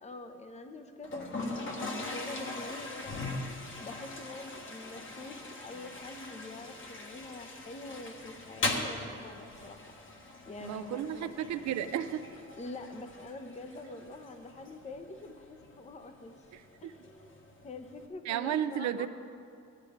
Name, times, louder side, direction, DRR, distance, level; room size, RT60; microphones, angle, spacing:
voice 1, 0.0-3.2 3.8-9.8 10.5-11.3 12.6-16.5 16.8-19.1, left 2 dB, 25° left, 7 dB, 0.7 m, -45 dB
Toilet flush, 1.0-18.1, left 2 dB, 40° left, 1.4 m, -41 dB
voice 2, 10.6-12.2 16.5-17.0 18.3-19.1, right 10 dB, 65° right, 11 dB, 0.5 m, -33 dB
15.0 x 10.5 x 3.6 m, 2.6 s
cardioid pair, 90°, 30 cm